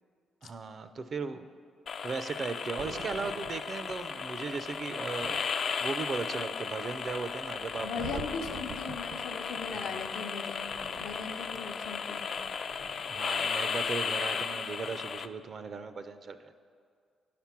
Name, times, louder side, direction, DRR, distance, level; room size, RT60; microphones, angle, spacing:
voice 1, 0.4-1.5 2.0-5.4 5.8-8.2 9.7-10.0 13.1-16.6, right 4 dB, 45° right, 10 dB, 0.4 m, -37 dB
sound 1, 1.9-15.3, left 6 dB, 55° left, 0.3 m, -35 dB
Thunder, 2.8-13.4 13.7-14.0, right 4 dB, 75° right, 0.7 m, -48 dB
voice 2, 7.8-10.7 11.0-12.3, left 5 dB, 85° left, 3 dB, 0.7 m, -39 dB
9.5 x 5.9 x 5.8 m, 2.2 s
cardioid pair, 90°, 0 cm